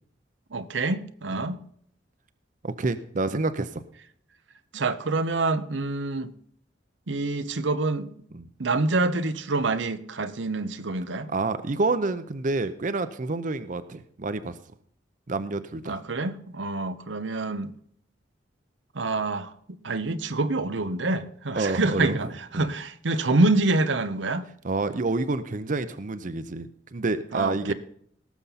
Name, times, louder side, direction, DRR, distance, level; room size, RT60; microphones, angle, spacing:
voice 1, 0.5-1.6 4.7-6.3 7.1-8.1 8.6-11.3 15.9-17.7 18.9-24.4 27.3-27.7, right 2 dB, 85° right, 11 dB, 0.9 m, -26 dB
voice 2, 2.6-3.8 8.3-8.5 11.3-14.6 15.3-16.0 21.5-22.2 22.5-22.7 24.6-27.7, right 3 dB, 45° right, 12 dB, 0.6 m, -28 dB
18.5 x 7.1 x 4.1 m, 0.64 s
head